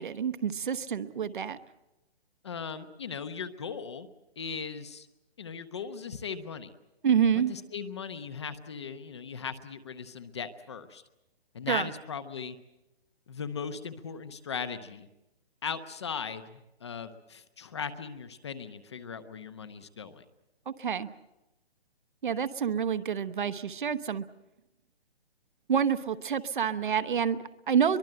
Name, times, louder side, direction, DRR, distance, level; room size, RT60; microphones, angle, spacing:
voice 1, 0.0-1.6 7.0-7.5 11.7-11.9 20.7-21.1 22.2-24.2 25.7-28.0, right 7 dB, 50° right, 11 dB, 1.1 m, -28 dB
voice 2, 2.4-4.1 4.4-5.1 5.4-6.7 7.5-11.0 11.5-12.6 13.3-15.1 15.6-20.2, left 6 dB, 25° left, 11 dB, 0.8 m, -38 dB
23.5 x 22.5 x 7.7 m, 0.98 s
hypercardioid pair, 170°, 31 cm